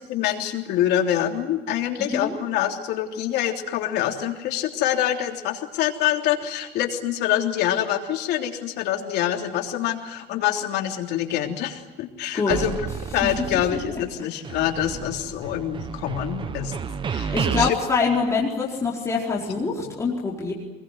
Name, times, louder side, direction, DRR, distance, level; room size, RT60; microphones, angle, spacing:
voice 1, 0.1-12.8 13.1-16.7 17.1-17.8, left 11 dB, 75° left, 3 dB, 3.4 m, -25 dB
voice 2, 2.0-2.3 12.3-12.6 13.7-14.0 17.3-20.5, left 4 dB, 15° left, -3 dB, 4.8 m, -25 dB
sound 1, 12.5-14.2 14.4-17.7, right 6 dB, 30° right, 1.2 m, -31 dB
25.0 x 21.5 x 9.4 m, 1.1 s
cardioid pair, 140°, 17 cm